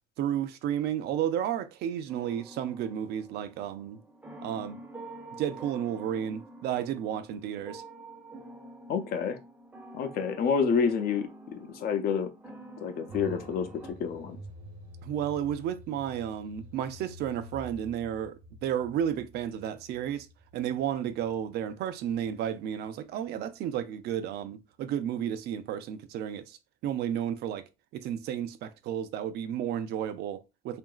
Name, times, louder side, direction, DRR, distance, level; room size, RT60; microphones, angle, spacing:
voice 1, 0.2-4.0 4.4-4.8 5.4-7.8 15.0-20.3 20.5-26.6 26.8-27.6 27.9-30.8, right 10 dB, 75° right, 0.4 m, -32 dB
sound 1, 2.1-13.9, right 2 dB, 10° right, 0.6 m, -48 dB
voice 2, 8.9-9.4 9.9-12.3 12.8-14.4, left 6 dB, 65° left, 0.6 m, -29 dB
sound 2, 13.1-23.0 23.2-23.3, equal, 55° right, 0.8 m, -49 dB
2.8 x 2.5 x 2.3 m
cardioid pair, 110°, 17 cm